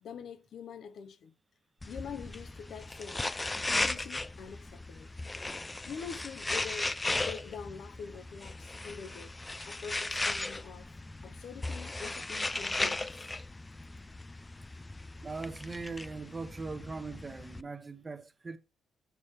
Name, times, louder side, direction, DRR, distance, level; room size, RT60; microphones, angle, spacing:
voice 1, 0.0-1.3 1.9-5.1 5.5-9.3 9.7-10.9 11.2-13.3, left 7 dB, 65° left, 0.6 m, -45 dB
sound 1, 1.8-17.6, left 2 dB, 15° left, 0.3 m, -37 dB
voice 2, 15.2-18.6, right 4 dB, 25° right, 0.8 m, -40 dB
8.2 x 3.1 x 5.6 m
cardioid pair, 95°, 0 cm